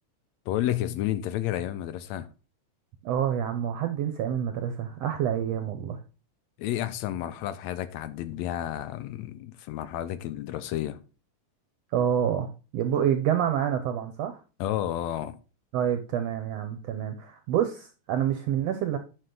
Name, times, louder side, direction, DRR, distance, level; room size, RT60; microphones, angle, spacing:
voice 1, 0.5-2.3 6.6-11.0 14.6-15.4, left 12 dB, 80° left, 1.6 m, -31 dB
voice 2, 3.0-6.0 11.9-12.5 12.7-14.4 15.7-19.0, right 9 dB, 70° right, 1.6 m, -27 dB
9.0 x 6.4 x 3.8 m
omnidirectional pair, 3.6 m